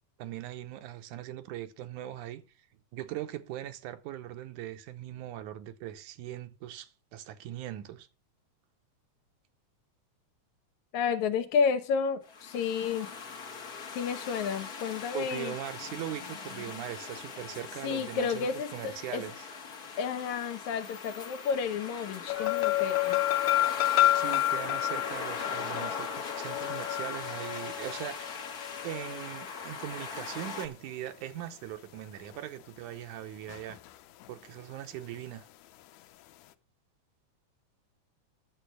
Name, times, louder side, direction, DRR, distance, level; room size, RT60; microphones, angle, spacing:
voice 1, 0.2-2.4 2.9-8.1 15.1-19.5 24.1-26.1 26.4-28.4 28.8-33.8 34.3-35.5, right 12 dB, 80° right, 2.3 m, -40 dB
voice 2, 10.9-13.1 13.9-15.6 17.8-19.2 20.0-23.2, left 6 dB, 70° left, 2.4 m, -31 dB
sound 1, 12.3-30.7, left 5 dB, 45° left, 1.3 m, -40 dB
sound 2, 22.3-29.6 33.5-33.9 34.2-34.3, left 15 dB, 90° left, 2.2 m, -30 dB
11.5 x 7.1 x 6.2 m
omnidirectional pair, 3.5 m